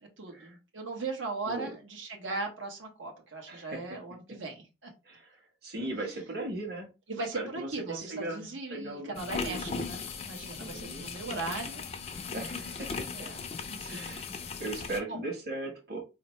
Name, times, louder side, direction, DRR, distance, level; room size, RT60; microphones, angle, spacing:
voice 1, 0.2-4.9 7.1-11.8 13.1-13.4 13.7-14.2 15.1-15.2, right 3 dB, 90° right, 0 dB, 1.2 m, -38 dB
voice 2, 3.5-4.0 5.0-5.4 5.6-6.9 7.3-8.4 8.7-9.7 10.5-11.4 12.3-13.3 13.8-14.2 14.6-16.0, right 2 dB, 50° right, 1 dB, 1.3 m, -38 dB
sound 1, 9.1-15.0, left 5 dB, 30° left, 0.4 m, -38 dB
4.4 x 2.8 x 3.1 m, 0.27 s
head